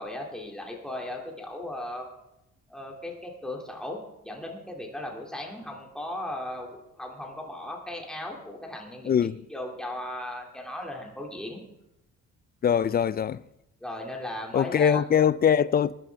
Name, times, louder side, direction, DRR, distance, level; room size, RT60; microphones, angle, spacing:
voice 1, 0.0-2.1 2.7-11.6 13.8-15.0, left 1 dB, ahead, 2.4 m, -37 dB
voice 2, 9.0-9.4 12.6-13.4 14.5-15.9, left 8 dB, 30° left, 0.4 m, -22 dB
19.0 x 11.0 x 3.4 m
cardioid pair, 90°, 30 cm